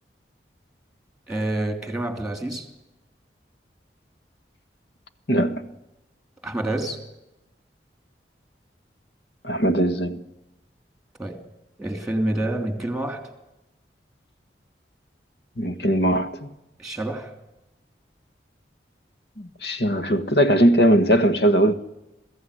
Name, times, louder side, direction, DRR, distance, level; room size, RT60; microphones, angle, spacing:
voice 1, 1.3-2.7 6.4-7.0 11.2-11.4 11.8-13.3 16.8-17.3, right 1 dB, 5° right, 3.0 m, -28 dB
voice 2, 5.3-5.7 9.4-10.2 15.6-16.5 19.4-21.7, equal, 65° left, 1.5 m, -20 dB
21.5 x 16.0 x 10.0 m
head